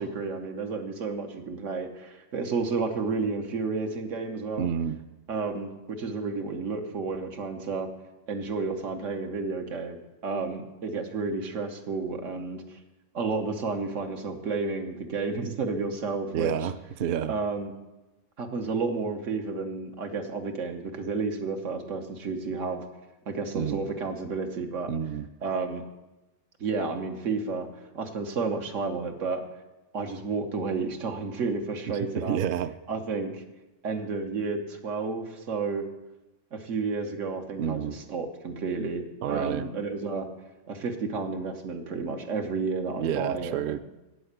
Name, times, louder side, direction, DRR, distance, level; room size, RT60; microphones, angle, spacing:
voice 1, 0.0-4.7 5.3-7.9 8.3-12.8 13.1-16.7 17.3-17.7 18.4-22.8 23.3-24.9 25.4-25.8 26.6-27.7 27.9-29.4 29.9-32.4 32.9-33.4 33.8-35.9 36.5-40.3 40.7-43.8, right 4 dB, 90° right, 4 dB, 1.5 m, -31 dB
voice 2, 4.6-5.0 16.3-16.7 17.0-17.3 23.5-23.9 24.9-25.3 32.2-32.7 37.6-38.0 39.2-39.7 43.0-43.8, right 9 dB, 60° right, 12 dB, 0.6 m, -29 dB
8.6 x 7.8 x 8.1 m, 1.0 s
omnidirectional pair, 1.3 m